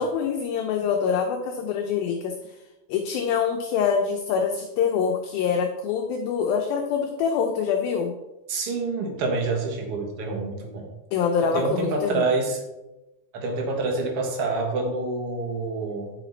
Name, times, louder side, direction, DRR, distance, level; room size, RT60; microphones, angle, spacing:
voice 1, 0.0-2.3 2.9-8.1 11.1-12.3, left 6 dB, 75° left, 3 dB, 2.3 m, -25 dB
voice 2, 8.5-10.9 11.4-12.6 13.3-16.1, right 3 dB, 50° right, 1 dB, 1.8 m, -27 dB
10.0 x 7.6 x 4.1 m, 1.0 s
omnidirectional pair, 4.7 m